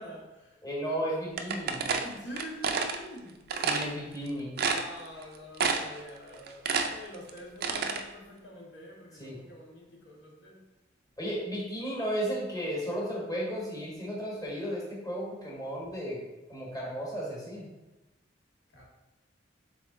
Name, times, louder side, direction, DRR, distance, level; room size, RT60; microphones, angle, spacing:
voice 1, 0.0-0.6 1.8-3.4 4.6-10.6 18.7-18.9, left 1 dB, 65° left, -2 dB, 1.1 m, -46 dB
voice 2, 0.6-1.8 3.6-4.5 9.2-9.4 11.2-16.2 16.5-17.7, equal, 20° left, -5 dB, 1.3 m, -34 dB
sound 1, 1.4-3.0 3.5-3.9 4.3-4.4 4.6-5.2 5.6-6.0 6.3-8.0, right 5 dB, 50° right, 0.4 m, -29 dB
3.6 x 3.5 x 3.7 m, 1.1 s
head